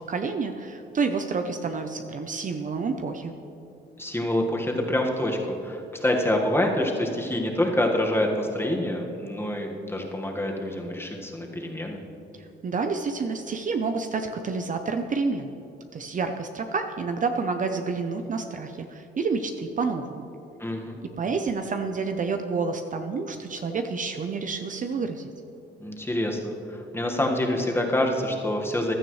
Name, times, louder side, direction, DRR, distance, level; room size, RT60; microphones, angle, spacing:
voice 1, 0.1-3.3 12.4-15.5 15.9-20.3 21.2-25.3, right 4 dB, 40° right, 6 dB, 0.7 m, -29 dB
voice 2, 4.0-12.0 20.6-21.0 25.8-28.9, left 1 dB, 10° left, 1 dB, 1.7 m, -26 dB
15.5 x 11.5 x 3.2 m, 2.8 s
cardioid pair, 90°, 20 cm